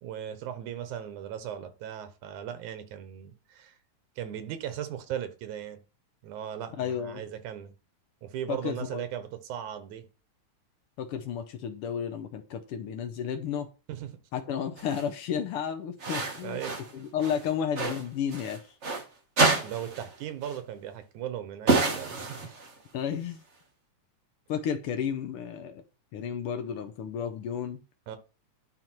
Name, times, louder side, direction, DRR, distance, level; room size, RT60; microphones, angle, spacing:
voice 1, 0.0-3.8 4.2-5.8 6.2-7.7 8.2-10.1 13.9-14.2 16.1-16.7 19.6-22.5 28.1-28.2, right 10 dB, 85° right, 2.4 m, -38 dB
voice 2, 6.8-7.2 8.5-9.0 11.0-13.7 14.3-16.6 16.9-18.7 22.9-23.4 24.5-25.8 26.1-27.8, left 8 dB, 85° left, 1.2 m, -32 dB
sound 1, 14.8-15.1 16.0-16.9 17.2-19.0 19.4-20.1 20.4-20.6 21.7-22.8, right 3 dB, 45° right, 0.9 m, -28 dB
10.5 x 4.0 x 4.5 m
omnidirectional pair, 3.4 m